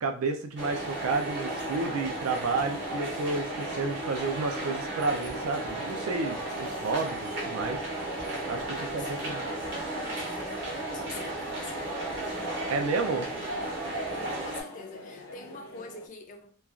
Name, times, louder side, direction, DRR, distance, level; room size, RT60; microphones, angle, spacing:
voice 1, 0.0-7.8 8.5-9.4 12.7-13.3, right 3 dB, 75° right, 0.4 m, -31 dB
sound 1, 0.6-14.6, right 2 dB, 50° right, 0.9 m, -34 dB
sound 2, 0.7-16.1, left 1 dB, 85° left, 0.7 m, -46 dB
voice 2, 8.7-12.5 14.2-16.6, left 4 dB, 35° left, 0.4 m, -46 dB
3.1 x 2.3 x 2.4 m
head